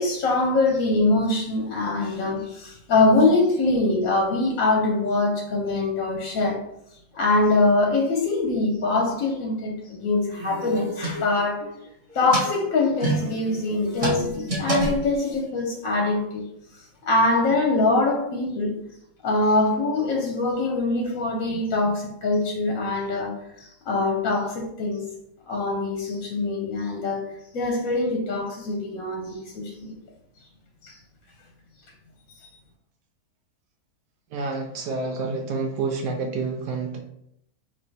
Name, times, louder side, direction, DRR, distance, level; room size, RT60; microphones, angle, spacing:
voice 1, 0.0-6.6 7.1-11.7 12.1-16.5 17.0-18.7 19.2-25.1 25.5-29.9 30.8-31.0, left 2 dB, 60° left, 1.0 m, -23 dB
sound 1, 10.3-11.7 12.1-15.6, right 2 dB, 25° right, 0.9 m, -28 dB
voice 2, 34.3-37.0, right 4 dB, 80° right, 1.2 m, -28 dB
4.2 x 2.6 x 4.1 m
omnidirectional pair, 1.9 m